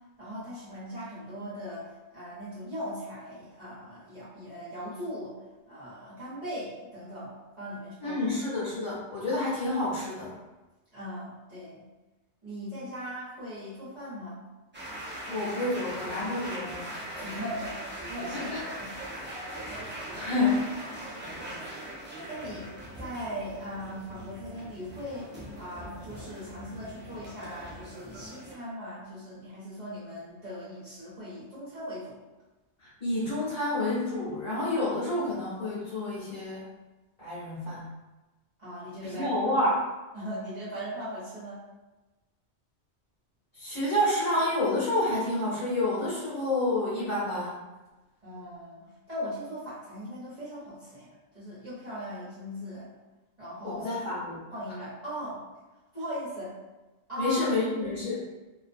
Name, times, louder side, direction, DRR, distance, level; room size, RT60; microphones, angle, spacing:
voice 1, 0.2-5.3 5.7-8.2 10.9-11.9 12.4-14.5 17.2-18.9 22.3-22.7 23.0-32.2 38.6-39.3 40.1-41.6 48.2-51.1 51.3-52.9 53.4-53.9 54.5-55.4 55.9-56.6 57.1-57.5, equal, 40° right, -13 dB, 1.0 m, -39 dB
voice 2, 8.0-10.4 15.3-16.9 18.3-18.6 19.7-19.8 20.1-20.6 32.8-36.6 37.2-37.9 39.0-39.8 43.6-47.5 53.6-54.4 57.2-58.2, left 1 dB, 40° left, -11 dB, 1.0 m, -29 dB
sound 1, 14.7-28.6, right 1 dB, 15° right, 0.4 m, -40 dB
2.5 x 2.2 x 2.5 m, 1.1 s
omnidirectional pair, 1.2 m